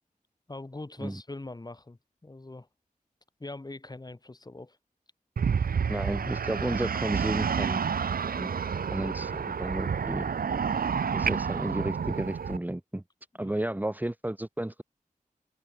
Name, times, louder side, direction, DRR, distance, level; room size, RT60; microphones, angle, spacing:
voice 1, 0.5-2.7 3.4-4.8 13.3-13.6, left 2 dB, 25° left, 5.3 m, -42 dB
sound 1, 5.4-12.6, right 6 dB, 90° right, 1.3 m, -29 dB
voice 2, 5.9-7.8 8.4-8.5 8.9-10.3 11.1-13.0 13.4-14.8, right 1 dB, 10° right, 2.0 m, -32 dB
wide cardioid pair, 100°, 15 cm